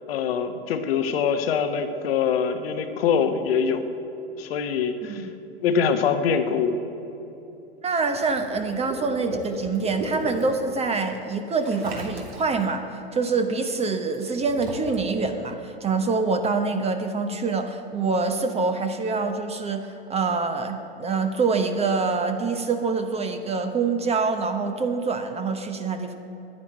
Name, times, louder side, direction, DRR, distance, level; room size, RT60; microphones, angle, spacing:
voice 1, 0.1-3.8 4.4-5.3 5.6-6.8, left 6 dB, 65° left, 8 dB, 1.3 m, -24 dB
voice 2, 7.8-26.1, right 4 dB, 20° right, 6 dB, 0.9 m, -25 dB
Water / Liquid, 8.1-10.5 11.6-12.6 14.1-15.1, right 2 dB, 70° right, 2.8 m, -35 dB
10.5 x 10.0 x 8.9 m, 2.9 s
hypercardioid pair, 105°, 32 cm